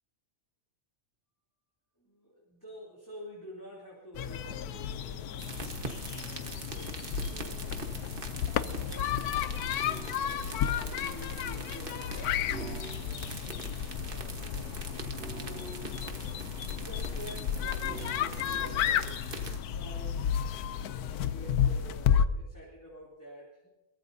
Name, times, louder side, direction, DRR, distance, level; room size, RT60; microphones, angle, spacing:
voice 1, 2.0-5.4 6.1-7.9 8.5-9.8 10.1-13.3 13.8-19.3 19.7-20.3 20.9-23.7, equal, 10° left, -5 dB, 3.0 m, -49 dB
sound 1, 4.1-22.3, left 9 dB, 80° left, 1.2 m, -32 dB
sound 2, 5.4-19.6, right 3 dB, 35° right, 1.4 m, -43 dB
sound 3, 9.8-10.3 12.5-13.4 15.1-16.3 17.8-19.2, right 5 dB, 65° right, 0.6 m, -45 dB
22.5 x 18.5 x 2.7 m, 1.1 s
omnidirectional pair, 1.7 m